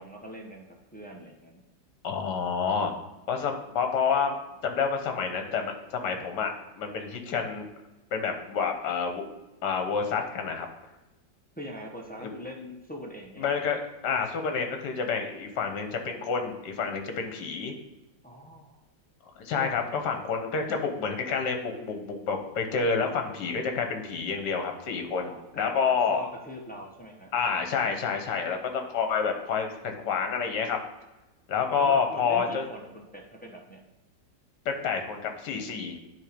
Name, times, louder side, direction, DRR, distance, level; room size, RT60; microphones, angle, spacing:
voice 1, 0.0-1.6 11.6-13.5 18.2-18.7 19.6-19.7 25.2-27.3 31.8-33.8, equal, 10° left, -2 dB, 0.5 m, -42 dB
voice 2, 2.0-2.9 3.3-4.4 4.6-7.7 8.1-9.2 9.6-10.7 12.2-12.3 13.4-17.7 19.4-26.2 27.3-30.8 31.5-32.7 34.6-36.0, left 5 dB, 65° left, 5 dB, 1.6 m, -28 dB
9.7 x 3.7 x 5.1 m, 1.0 s
omnidirectional pair, 2.0 m